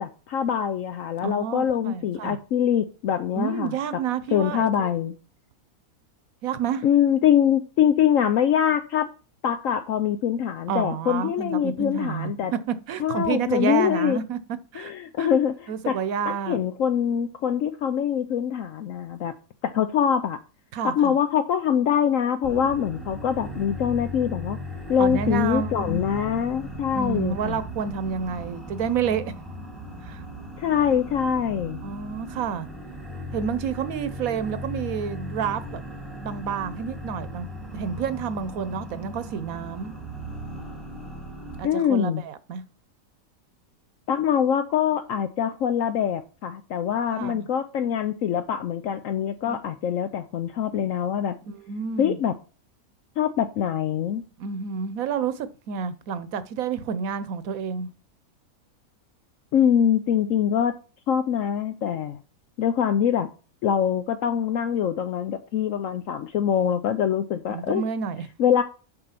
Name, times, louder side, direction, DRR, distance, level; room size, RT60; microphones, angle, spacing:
voice 1, 0.0-3.7 4.3-5.1 6.8-9.1 9.4-12.5 13.0-14.2 14.8-16.0 16.5-19.3 19.6-20.4 20.8-24.6 24.9-27.6 30.6-31.8 41.6-42.2 44.1-51.4 52.0-52.3 53.2-54.2 59.5-60.7 61.1-62.2 62.6-63.3 63.6-67.9 68.4-68.6, left 9 dB, 70° left, 1.0 m, -24 dB
voice 2, 1.2-2.4 3.3-4.7 6.4-6.8 10.7-14.4 14.7-14.9 15.2-15.3 15.7-16.6 20.7-21.2 25.0-26.0 26.9-29.3 30.0-30.2 31.8-32.7 33.3-35.8 36.1-37.5 37.7-40.0 41.6-42.6 47.1-47.5 49.4-49.6 51.5-52.2 54.4-57.9 67.5-68.3, right 7 dB, 75° right, 1.2 m, -29 dB
sound 1, 22.4-41.6, equal, ahead, 1.5 m, -37 dB
6.8 x 5.4 x 5.7 m
omnidirectional pair, 1.5 m